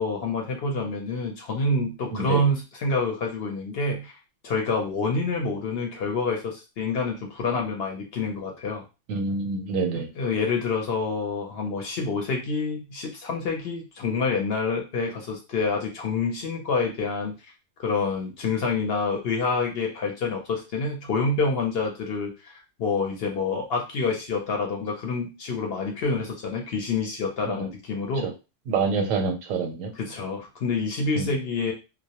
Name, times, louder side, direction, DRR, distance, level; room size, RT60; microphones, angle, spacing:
voice 1, 0.0-4.1 4.4-8.8 9.9-17.5 17.8-28.3 30.0-31.7, left 3 dB, 60° left, 1 dB, 0.7 m, -27 dB
voice 2, 2.1-2.4 9.1-10.1 27.5-27.7 28.2-28.3 28.7-29.9 31.2-31.3, right 4 dB, 90° right, 5 dB, 1.0 m, -27 dB
2.2 x 2.0 x 2.8 m, 0.28 s
omnidirectional pair, 1.3 m